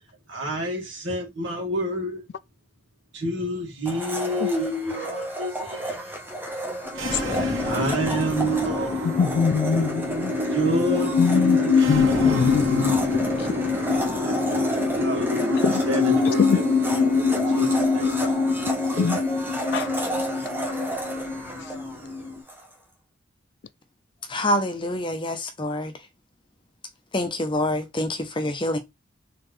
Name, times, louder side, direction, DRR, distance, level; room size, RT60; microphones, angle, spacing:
voice 1, 0.3-2.2 3.1-6.0 7.6-9.2 10.5-12.5 14.2-15.6 15.9-16.6 17.0-18.1 18.9-19.2, right 1 dB, 65° right, 2.2 m, -29 dB
Domestic sounds home sounds, 3.9-22.6, right 1 dB, 10° right, 1.1 m, -32 dB
sound 1, 6.8-22.4, left 4 dB, 85° right, 1.7 m, -24 dB
voice 2, 7.1-7.5 9.2-10.3 11.2-11.6 11.9-13.3 15.6-15.8 16.3-16.6 19.0-19.2 19.7-19.9, left 5 dB, 60° left, 0.4 m, -24 dB
voice 3, 24.3-25.9 27.1-28.8, left 1 dB, 25° left, 0.8 m, -26 dB
4.2 x 3.7 x 3.2 m
head